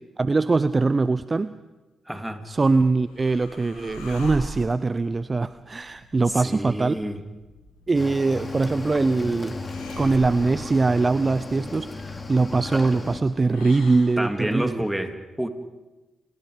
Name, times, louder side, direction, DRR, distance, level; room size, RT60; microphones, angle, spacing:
voice 1, 0.2-1.6 2.4-7.0 7.9-9.6 10.0-14.9, right 3 dB, 35° right, 14 dB, 0.7 m, -22 dB
voice 2, 2.1-2.5 6.4-7.2 12.7-12.8 14.2-15.5, right 1 dB, 5° right, 6 dB, 3.0 m, -29 dB
sound 1, 2.5-14.5, left 1 dB, 85° left, 5.4 m, -43 dB
Cricket / Waves surf, 7.9-13.2, left 3 dB, 30° left, 3.2 m, -35 dB
29.0 x 21.0 x 5.2 m, 1.1 s
hypercardioid pair, 40°, 0 cm